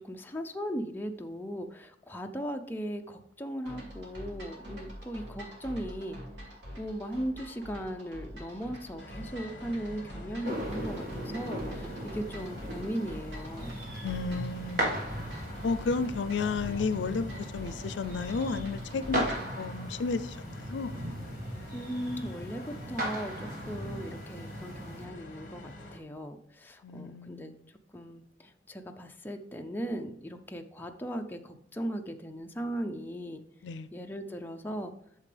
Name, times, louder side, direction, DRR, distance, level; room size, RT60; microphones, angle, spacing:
voice 1, 0.0-6.2 6.8-13.8 21.7-27.5 27.9-33.4 33.9-34.9, equal, 10° left, 0.4 m, -38 dB
sound 1, 3.7-19.5, equal, 85° right, 2.4 m, -45 dB
sound 2, 9.0-26.0, left 2 dB, 45° left, 1.0 m, -47 dB
sound 3, 10.4-25.1, right 1 dB, 50° right, 1.7 m, -38 dB
voice 2, 14.0-15.0 15.6-19.3 19.6-21.0 26.8-27.7 33.6-33.9, left 4 dB, 85° left, 0.4 m, -32 dB
8.7 x 6.7 x 3.3 m
head